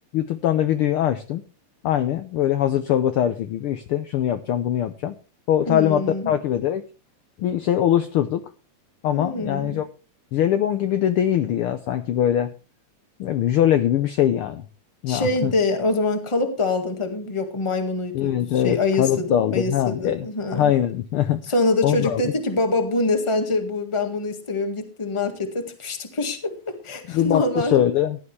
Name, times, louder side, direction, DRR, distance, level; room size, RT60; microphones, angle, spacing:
voice 1, 0.1-1.4 1.8-5.1 5.5-6.8 7.4-8.4 9.0-9.9 10.3-12.5 13.2-14.6 15.0-15.5 18.1-20.3 20.5-21.4 21.8-22.3 27.1-28.2, left 11 dB, 80° left, 10 dB, 1.2 m, -22 dB
voice 2, 5.7-6.3 9.1-9.8 15.1-20.7 21.5-27.8, left 2 dB, 15° left, 6 dB, 1.2 m, -25 dB
16.0 x 11.0 x 3.3 m, 0.31 s
omnidirectional pair, 3.3 m